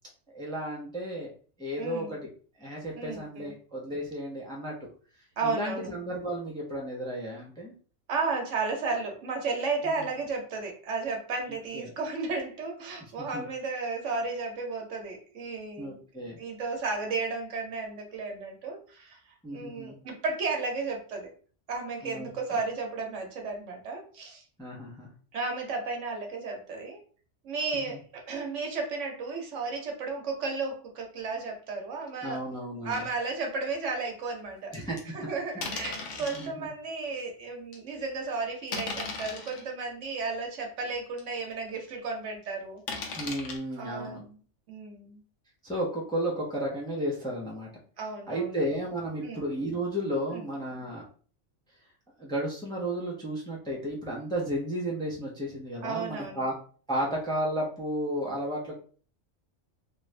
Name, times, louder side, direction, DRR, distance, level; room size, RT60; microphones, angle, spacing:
voice 1, 0.3-1.3 1.6-2.3 2.6-4.8 5.4-7.7 9.8-10.1 11.7-11.9 13.2-13.5 15.8-16.4 19.4-20.0 22.0-22.3 24.6-25.1 27.7-28.0 32.2-33.0 34.7-35.0 36.2-36.7 43.1-44.2 45.6-47.7 48.3-51.1 52.2-56.5 56.9-58.8, right 1 dB, 5° left, -3 dB, 0.6 m, -33 dB
voice 2, 1.8-2.1 3.0-3.5 5.4-5.9 8.1-16.0 16.4-19.2 19.5-21.3 21.7-24.4 25.3-27.0 27.4-32.4 32.8-34.7 35.1-42.8 43.8-44.3 44.7-45.2 48.0-48.6 49.2-49.4 50.3-50.5 55.8-56.4, right 4 dB, 70° right, 2 dB, 1.1 m, -33 dB
sound 1, 32.9-33.1 33.7-33.8 34.7-35.0 35.6-36.5 37.1-37.2 37.7-37.9 38.7-39.6 40.3-40.4 40.9-41.0 41.2-41.3 42.9-43.6, left 4 dB, 75° left, 1.1 m, -37 dB
3.0 x 2.5 x 3.2 m, 0.42 s
omnidirectional pair, 1.3 m